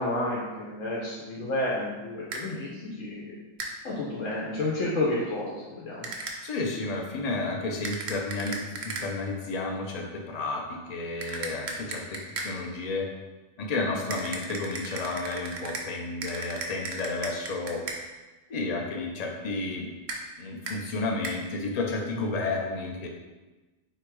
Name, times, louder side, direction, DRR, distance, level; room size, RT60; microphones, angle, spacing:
voice 1, 0.0-3.4 3.8-6.1, left 2 dB, 90° left, -5 dB, 1.1 m, -30 dB
sound 1, 2.3-2.4 3.6-3.7 6.0-6.4 7.8-9.1 11.2-12.5 14.1-15.9 16.2-18.0 20.1-20.2 20.7-20.8 21.2-21.4, right 3 dB, 80° right, 1.0 m, -35 dB
voice 2, 6.4-8.6 8.8-13.1 13.6-17.8 18.5-19.9 20.4-23.1, left 3 dB, 45° left, 0 dB, 0.5 m, -31 dB
3.4 x 2.9 x 4.6 m, 1.2 s
omnidirectional pair, 1.3 m